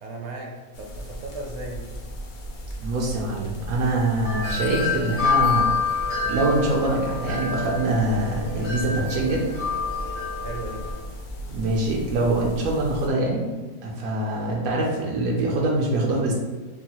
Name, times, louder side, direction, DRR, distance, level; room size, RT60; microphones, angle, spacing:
voice 1, 0.0-1.9 10.4-10.8, right 2 dB, 65° right, 0 dB, 0.7 m, -36 dB
sound 1, 0.7-13.1, left 1 dB, 90° left, 0.4 m, -37 dB
voice 2, 2.8-5.7 6.2-9.4 11.5-13.5 13.8-16.3, right 2 dB, 85° right, -3 dB, 1.1 m, -24 dB
Wind chime, 4.2-11.0, left 5 dB, 55° left, 1.2 m, -27 dB
4.5 x 2.3 x 2.9 m, 1.3 s
omnidirectional pair, 1.5 m